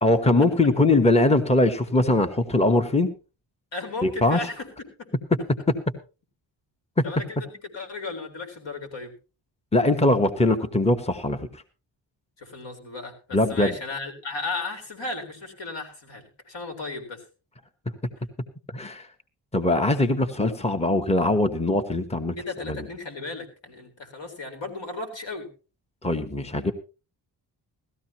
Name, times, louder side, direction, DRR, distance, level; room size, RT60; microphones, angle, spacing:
voice 1, 0.0-3.1 4.0-4.4 5.5-5.6 7.0-7.1 9.7-11.4 13.3-13.7 18.7-19.1 19.5-22.3 22.6-22.9 26.0-26.7, left 2 dB, 15° left, 8 dB, 1.2 m, -21 dB
voice 2, 3.7-4.7 7.0-9.1 12.4-17.2 22.4-25.5, left 3 dB, 70° left, 4 dB, 4.0 m, -35 dB
18.0 x 14.0 x 3.0 m, 0.33 s
cardioid pair, 80°, 45 cm